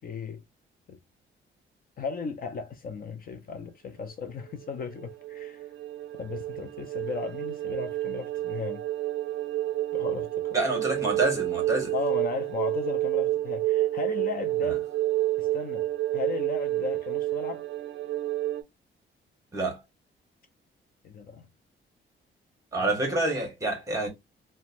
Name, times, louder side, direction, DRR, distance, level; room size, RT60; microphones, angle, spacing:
voice 1, 0.0-0.4 0.9-1.0 2.0-5.6 6.2-8.8 9.9-10.6 11.9-14.8 15.4-17.7 21.0-21.5 22.8-22.9, left 5 dB, 45° left, 0.4 m, -36 dB
sound 1, 4.5-18.6, right 15 dB, 65° right, 0.5 m, -30 dB
voice 2, 10.5-11.9 19.5-19.8 22.7-24.1, right 2 dB, 15° right, 1.1 m, -27 dB
2.9 x 2.1 x 2.5 m
cardioid pair, 155°, 21 cm